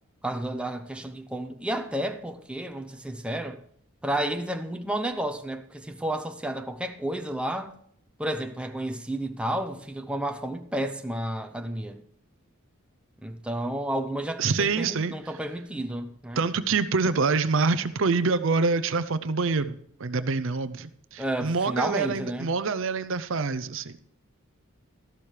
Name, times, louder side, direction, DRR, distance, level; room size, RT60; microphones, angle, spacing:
voice 1, 0.2-3.6 4.0-7.8 8.2-12.0 13.2-16.4 21.2-22.5, right 1 dB, 5° right, 0.7 m, -31 dB
voice 2, 14.4-15.3 16.4-24.0, right 4 dB, 65° right, 0.6 m, -26 dB
13.5 x 12.0 x 3.3 m
head